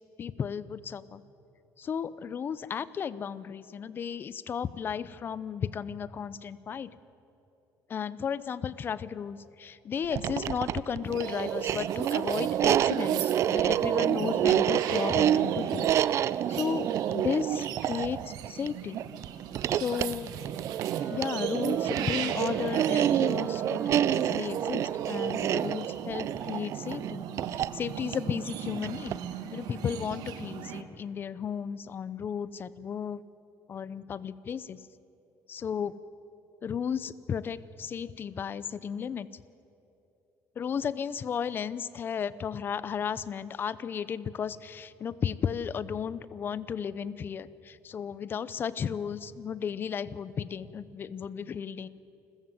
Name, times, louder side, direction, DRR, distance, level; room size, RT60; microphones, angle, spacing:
voice 1, 0.2-1.2 1.8-6.9 7.9-15.9 16.5-19.0 19.7-20.3 21.1-27.2 27.5-29.2 29.5-33.2 33.7-34.8 35.5-35.9 36.6-39.3 40.6-51.9, left 7 dB, 35° left, 17 dB, 0.7 m, -34 dB
sound 1, 10.0-29.3, right 11 dB, 50° right, 0.4 m, -28 dB
sound 2, 11.1-30.8, right 9 dB, 80° right, 1.4 m, -40 dB
Wind instrument woodwind instrument, 19.5-26.1, equal, 10° right, 4.3 m, -51 dB
29.0 x 15.0 x 7.7 m, 3.0 s
cardioid pair, 155°, 6 cm